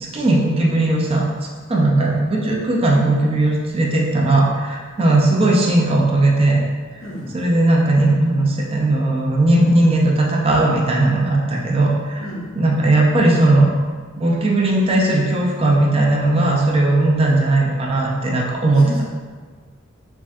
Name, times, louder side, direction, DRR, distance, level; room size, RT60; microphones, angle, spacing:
voice 1, 0.0-1.2 1.7-6.6 7.3-12.2 12.5-13.7 14.2-18.8, right 2 dB, 30° right, -2 dB, 0.4 m, -17 dB
voice 2, 7.0-7.3 12.2-12.5 18.8-19.0, left 1 dB, 75° left, -5 dB, 0.9 m, -32 dB
3.5 x 3.2 x 2.6 m, 1.5 s
head